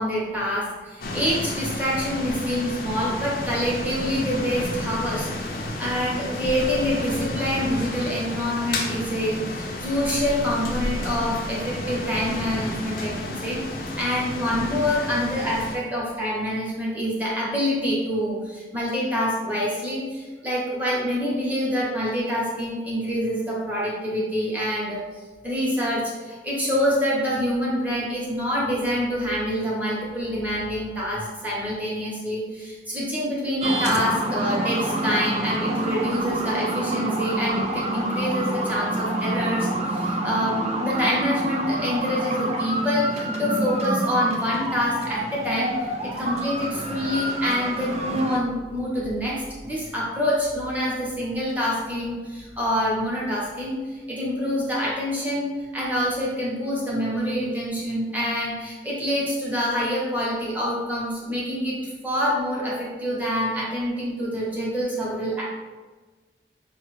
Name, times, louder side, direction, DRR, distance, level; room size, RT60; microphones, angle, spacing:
voice 1, 0.0-13.6 14.0-25.0 25.4-45.7 46.0-65.4, equal, 10° right, -6 dB, 0.9 m, -26 dB
sound 1, 1.0-15.8, left 1 dB, 55° left, 0.5 m, -31 dB
sound 2, 33.6-48.4, right 1 dB, 35° right, 0.4 m, -27 dB
5.3 x 2.3 x 3.2 m, 1.3 s
head